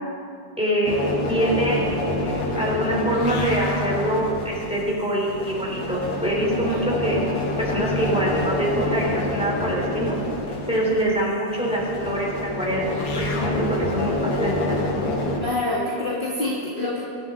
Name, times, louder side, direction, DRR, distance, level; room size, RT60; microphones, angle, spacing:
voice 1, 0.6-0.9 1.3-7.2 7.6-10.2 10.7-13.7 13.9-14.8, right 1 dB, 5° right, -4 dB, 3.9 m, -25 dB
sound 1, 0.8-15.4, left 2 dB, 55° left, 2.0 m, -27 dB
voice 2, 15.4-17.1, left 2 dB, 30° left, -7 dB, 2.3 m, -26 dB
24.0 x 12.0 x 4.1 m, 2.3 s
omnidirectional pair, 1.9 m